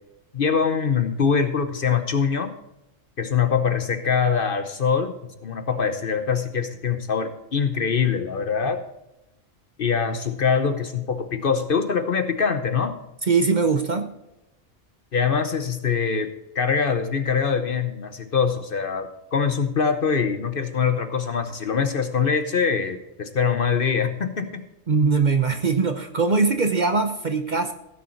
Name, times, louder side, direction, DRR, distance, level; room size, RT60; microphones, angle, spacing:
voice 1, 0.3-2.5 3.2-8.8 9.8-13.0 15.1-24.6, left 6 dB, 50° left, 9 dB, 0.9 m, -23 dB
voice 2, 13.3-14.1 24.9-27.7, right 4 dB, 40° right, 7 dB, 0.8 m, -21 dB
15.5 x 6.7 x 4.5 m, 0.91 s
omnidirectional pair, 1.3 m